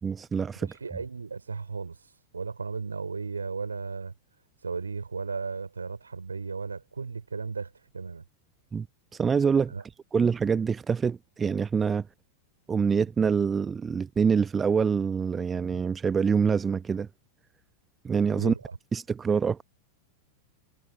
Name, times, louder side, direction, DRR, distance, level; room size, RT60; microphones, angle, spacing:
voice 1, 0.0-0.7 8.7-8.9 9.1-9.7 10.1-12.1 12.7-17.1 18.0-18.5 18.9-19.6, right 6 dB, 20° right, 1.0 m, -25 dB
voice 2, 0.8-2.0 2.3-4.1 4.6-8.2 9.7-9.8 18.3-18.8, right 4 dB, 75° right, 5.0 m, -35 dB
figure-of-eight pair, 90°, 0 cm